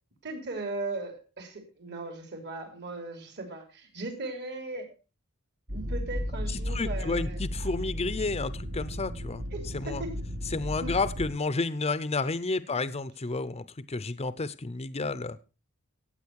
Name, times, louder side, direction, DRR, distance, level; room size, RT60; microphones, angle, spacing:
voice 1, 0.2-4.9 5.7-7.7 9.5-10.1 10.8-10.9, right 2 dB, 55° right, 3.3 m, -38 dB
sound 1, 5.7-11.3, equal, 80° right, 4.1 m, -34 dB
voice 2, 6.5-9.4 9.7-10.0 10.5-15.4, left 3 dB, 30° left, 0.7 m, -31 dB
15.5 x 8.9 x 4.7 m
head